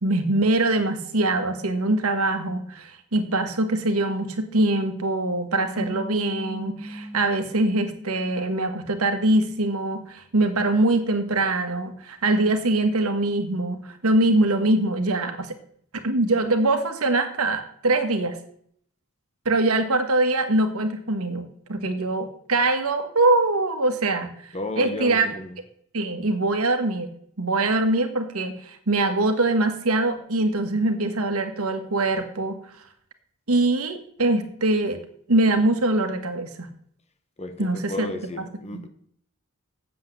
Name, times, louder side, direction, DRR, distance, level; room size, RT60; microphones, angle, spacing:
voice 1, 0.0-15.5 16.0-18.4 19.4-25.3 25.9-27.1 27.4-32.6 33.5-35.0 35.3-36.7 37.6-38.1 38.4-38.8, right 2 dB, 75° right, 7 dB, 1.6 m, -23 dB
sound 1, 5.8-9.1, right 1 dB, ahead, 0.8 m, -38 dB
voice 2, 24.5-25.6 37.4-38.9, left 1 dB, 30° left, 8 dB, 1.3 m, -33 dB
8.1 x 7.6 x 7.6 m, 0.63 s
head